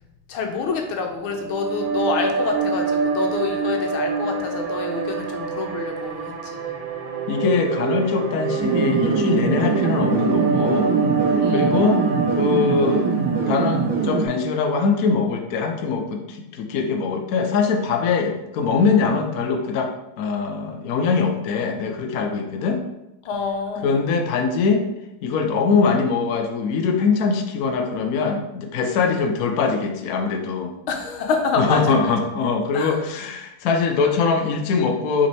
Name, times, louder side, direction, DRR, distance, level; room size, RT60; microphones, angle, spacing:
voice 1, 0.3-6.8 11.4-11.9 23.2-24.0 29.0-29.2 30.9-32.0 32.7-33.0, left 5 dB, 90° left, 3 dB, 1.8 m, -27 dB
sound 1, 1.2-14.6, right 4 dB, 75° right, 1.8 m, -26 dB
voice 2, 7.3-10.9 11.5-12.1 12.4-13.1 13.5-19.9 20.2-22.8 23.8-24.8 25.2-30.7 31.6-35.3, left 5 dB, 60° left, 4 dB, 1.0 m, -22 dB
sound 2, 8.6-14.3, right 5 dB, 55° right, 1.4 m, -23 dB
5.6 x 4.4 x 4.5 m, 0.91 s
omnidirectional pair, 2.2 m